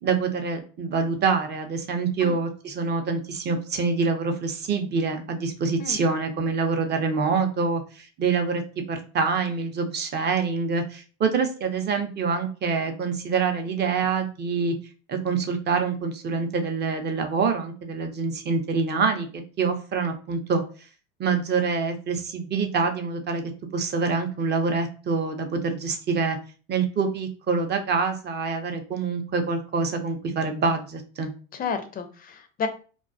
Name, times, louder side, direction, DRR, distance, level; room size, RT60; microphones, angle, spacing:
voice 1, 0.0-14.7 15.1-20.6 21.2-26.4 26.7-31.3, right 4 dB, 30° right, 6 dB, 0.5 m, -26 dB
voice 2, 31.5-32.7, left 6 dB, 25° left, 8 dB, 0.4 m, -31 dB
2.2 x 2.2 x 2.5 m, 0.37 s
hypercardioid pair, 80°, 35 cm